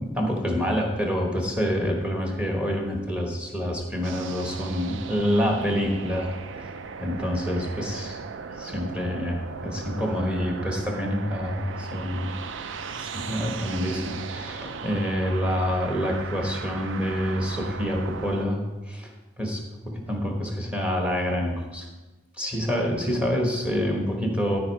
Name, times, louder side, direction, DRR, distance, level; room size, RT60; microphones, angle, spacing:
voice 1, 0.0-8.2 8.5-12.3 12.9-19.1 19.4-21.9 22.4-24.6, equal, 5° right, 1 dB, 1.2 m, -27 dB
sound 1, 4.0-18.5, right 5 dB, 70° right, 0.4 m, -37 dB
12.5 x 5.3 x 4.6 m, 1.2 s
head